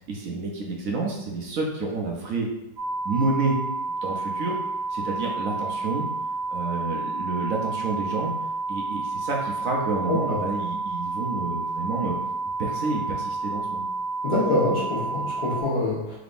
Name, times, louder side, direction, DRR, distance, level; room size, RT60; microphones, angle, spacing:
voice 1, 0.1-2.5 3.0-3.6 4.0-4.6 4.9-6.0 6.5-8.3 8.7-12.1 12.6-13.9, right 3 dB, 65° right, -1 dB, 0.9 m, -29 dB
sound 1, 2.8-15.6, right 3 dB, 40° right, 1.2 m, -30 dB
voice 2, 14.2-16.2, left 1 dB, 30° left, -7 dB, 1.1 m, -25 dB
3.8 x 3.5 x 2.5 m, 0.91 s
omnidirectional pair, 2.0 m